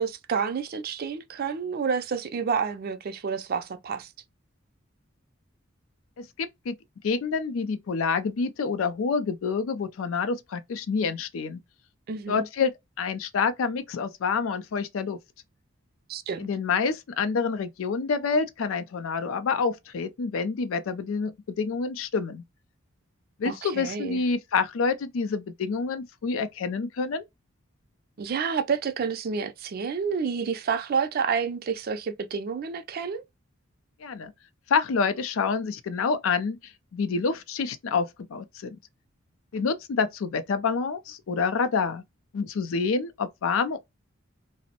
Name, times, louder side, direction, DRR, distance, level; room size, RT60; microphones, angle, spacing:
voice 1, 0.0-4.1 12.1-12.5 16.1-16.5 23.4-24.2 28.2-33.2, right 6 dB, 45° right, 0.3 m, -29 dB
voice 2, 6.2-6.8 7.0-11.6 12.3-12.7 13.0-15.2 16.4-22.4 23.4-27.2 34.0-34.3 34.7-38.8 39.5-42.0 42.3-43.8, left 5 dB, 80° left, 0.4 m, -27 dB
2.5 x 2.0 x 2.8 m
head